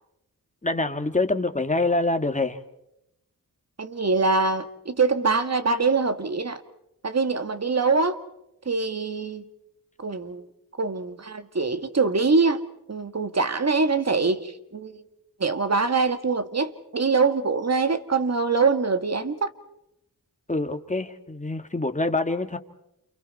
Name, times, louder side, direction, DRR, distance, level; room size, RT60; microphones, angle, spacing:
voice 1, 0.6-2.6 20.5-22.6, left 2 dB, 20° left, 2.0 m, -25 dB
voice 2, 3.8-6.6 7.0-8.2 8.7-9.4 10.0-10.5 10.8-12.6 12.9-15.0 15.4-19.5, right 4 dB, 45° right, 1.9 m, -24 dB
29.0 x 29.0 x 4.3 m
wide cardioid pair, 70°, 35 cm